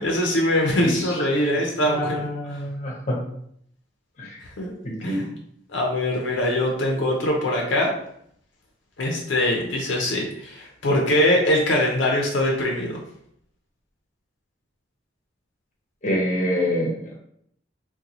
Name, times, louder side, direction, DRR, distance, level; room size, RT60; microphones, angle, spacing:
voice 1, 0.0-2.3 4.6-4.7 5.0-5.2 5.7-7.9 9.0-13.0, left 1 dB, 70° left, 0 dB, 0.6 m, -22 dB
voice 2, 0.8-1.1 1.8-3.2 4.2-4.4 4.8-5.3 16.0-17.1, left 1 dB, 40° left, -1 dB, 0.8 m, -26 dB
3.8 x 2.2 x 2.9 m, 0.69 s
head